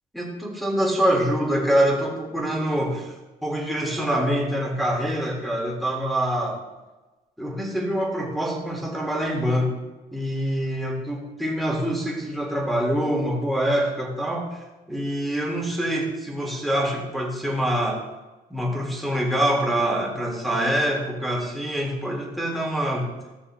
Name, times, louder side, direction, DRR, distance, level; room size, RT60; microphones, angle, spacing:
voice 1, 0.1-3.1 3.4-6.6 7.4-9.7 10.1-18.0 18.5-23.1, equal, ahead, -1 dB, 1.9 m, -25 dB
13.0 x 6.5 x 2.2 m, 1.1 s
cardioid pair, 110°, 17 cm